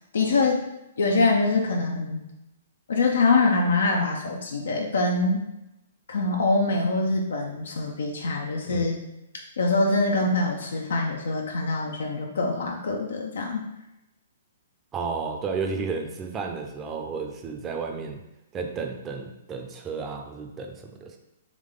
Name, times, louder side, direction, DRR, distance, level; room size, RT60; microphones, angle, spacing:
voice 1, 0.1-0.6 1.0-2.2 2.9-5.4 6.1-9.0 9.6-13.7, left 3 dB, 80° left, 1 dB, 0.6 m, -24 dB
voice 2, 14.9-18.2 18.5-21.2, right 5 dB, 20° right, 3 dB, 0.6 m, -32 dB
3.7 x 3.1 x 3.7 m, 0.90 s
hypercardioid pair, 135°, 0 cm